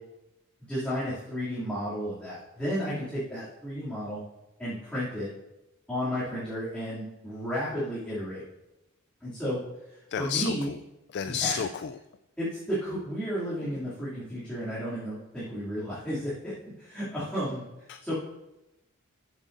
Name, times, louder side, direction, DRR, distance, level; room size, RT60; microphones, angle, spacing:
voice 1, 0.6-4.2 4.6-5.3 5.9-8.4 9.2-9.6 10.2-10.7 11.2-11.5 12.4-17.7 18.0-18.1, equal, 5° left, -12 dB, 2.7 m, -33 dB
voice 2, 10.1-10.8 11.1-12.0 17.9-18.1, left 7 dB, 50° left, 11 dB, 0.3 m, -31 dB
14.5 x 7.2 x 2.7 m, 0.95 s
head